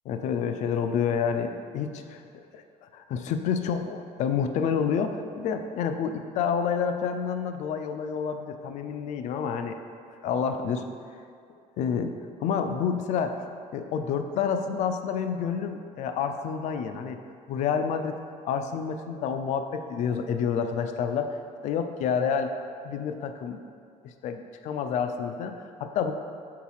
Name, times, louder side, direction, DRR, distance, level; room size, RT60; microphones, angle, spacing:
voice 1, 0.1-9.8 10.2-10.9 11.8-12.1 12.4-13.4 13.7-17.2 17.5-18.1 18.4-21.4 21.6-22.5 22.8-23.6 24.0-26.1, left 7 dB, 65° left, 7 dB, 0.4 m, -29 dB
4.7 x 4.0 x 5.5 m, 2.3 s
cardioid pair, 150°, 13 cm